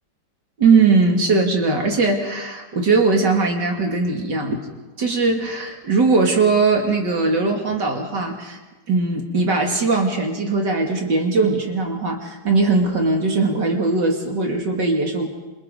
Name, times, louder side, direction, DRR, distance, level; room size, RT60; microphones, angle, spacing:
voice 1, 0.6-4.6 5.0-8.6 8.9-15.3, right 3 dB, 60° right, 1 dB, 3.2 m, -20 dB
28.0 x 27.0 x 4.0 m, 1.2 s
omnidirectional pair, 2.1 m